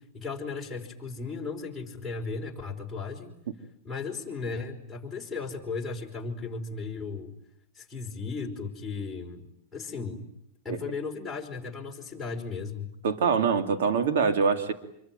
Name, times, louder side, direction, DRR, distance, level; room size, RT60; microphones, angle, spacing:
voice 1, 0.0-3.3 3.8-7.3 7.7-9.4 9.7-10.2 10.6-12.9, left 4 dB, 5° left, -4 dB, 5.0 m, -36 dB
voice 2, 13.0-14.7, right 5 dB, 70° right, 7 dB, 2.5 m, -24 dB
27.0 x 22.5 x 9.2 m, 0.76 s
supercardioid pair, 155°, 0 cm